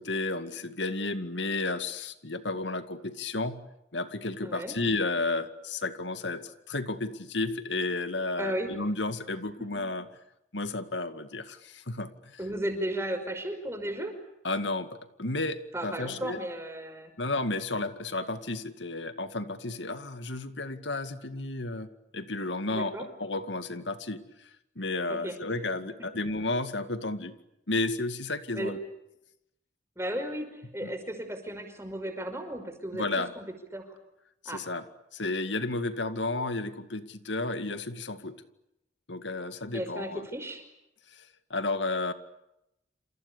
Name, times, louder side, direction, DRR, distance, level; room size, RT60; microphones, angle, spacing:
voice 1, 0.0-3.6 3.9-10.1 10.5-12.4 14.4-16.4 17.2-21.9 22.1-24.5 24.8-27.4 27.7-28.8 30.8-30.9 32.9-33.3 34.4-34.8 35.1-38.4 39.1-40.3 41.1-42.1, left 2 dB, 85° left, 10 dB, 2.2 m, -32 dB
voice 2, 4.4-4.7 8.4-8.7 9.6-9.8 12.4-14.2 15.7-17.1 22.7-23.1 25.1-25.3 28.5-28.7 29.9-33.0 33.3-33.4 33.7-33.9 34.4-34.6 39.7-40.6, right 1 dB, 15° right, 7 dB, 5.3 m, -35 dB
29.0 x 28.5 x 7.0 m, 0.84 s
head